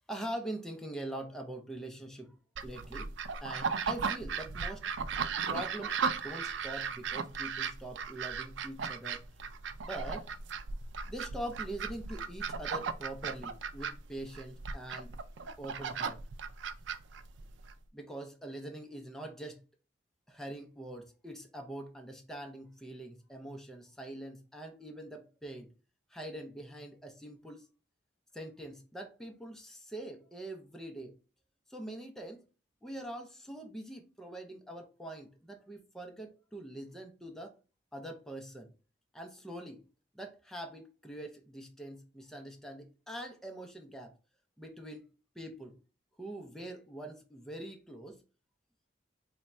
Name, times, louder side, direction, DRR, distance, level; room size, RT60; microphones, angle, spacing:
voice 1, 0.1-2.3 2.6-3.1 3.4-4.9 5.5-9.2 9.8-10.3 11.1-15.1 15.6-16.2 17.9-19.6 20.3-25.7 26.1-27.6 28.3-31.1 31.7-32.4 32.8-37.5 37.9-38.7 39.1-39.8 40.1-44.1 44.6-45.1 45.4-45.7 46.2-48.2, right 1 dB, 5° left, 0.5 m, -43 dB
sound 1, 2.5-17.7, right 5 dB, 90° right, 0.4 m, -36 dB
3.5 x 2.2 x 4.1 m
head